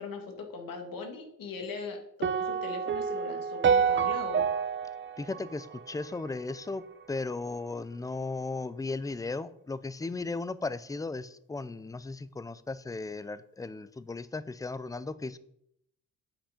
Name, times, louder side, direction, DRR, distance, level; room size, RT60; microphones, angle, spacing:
voice 1, 0.0-4.4, left 4 dB, 85° left, 4 dB, 2.1 m, -40 dB
sound 1, 2.2-6.5, right 6 dB, 35° right, 0.6 m, -28 dB
voice 2, 5.2-15.4, left 3 dB, 10° left, 16 dB, 0.3 m, -36 dB
8.8 x 7.7 x 5.2 m, 0.74 s
wide cardioid pair, 155°, 33 cm